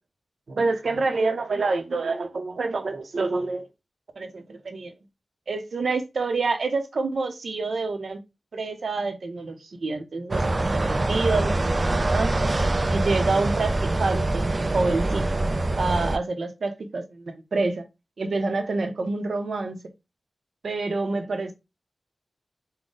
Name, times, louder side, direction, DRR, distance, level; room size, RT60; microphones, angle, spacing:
voice 1, 0.5-3.7 4.2-4.9 5.5-8.2 8.5-10.8 11.1-11.8 12.1-12.5 12.9-15.4 15.8-17.8 18.2-19.8 20.6-21.5, right 3 dB, 75° right, 0.8 m, -27 dB
sound 1, 10.3-16.2, right 2 dB, 40° right, 0.4 m, -24 dB
3.9 x 2.2 x 3.8 m
wide cardioid pair, 70°, 0 cm